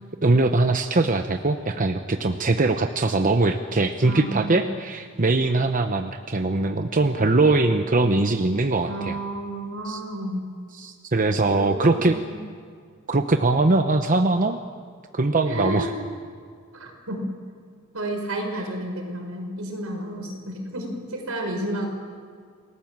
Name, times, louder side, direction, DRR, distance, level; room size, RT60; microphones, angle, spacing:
voice 1, 0.2-9.2 9.8-10.0 10.7-12.2 13.1-14.6 15.1-15.9, right 2 dB, 40° right, 6 dB, 0.9 m, -21 dB
voice 2, 4.0-4.6 8.8-10.5 11.6-12.4 15.5-16.1 16.7-17.4 17.9-21.9, right 1 dB, 80° right, 3 dB, 5.2 m, -31 dB
28.5 x 18.5 x 7.4 m, 2.1 s
head